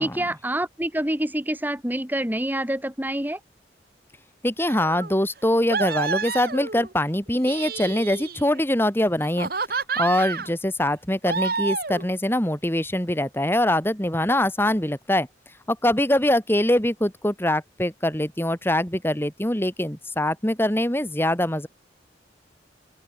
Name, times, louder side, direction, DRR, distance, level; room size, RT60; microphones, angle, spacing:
voice 1, 0.0-3.4, right 1 dB, 10° right, 2.7 m, -27 dB
voice 2, 4.4-9.5 10.0-15.3 15.7-21.7, left 1 dB, 15° left, 2.9 m, -23 dB
sound 1, 4.6-5.1 5.7-6.9 7.3-8.6 9.2-10.5 11.2-12.1, right 4 dB, 55° right, 2.8 m, -29 dB
open air
head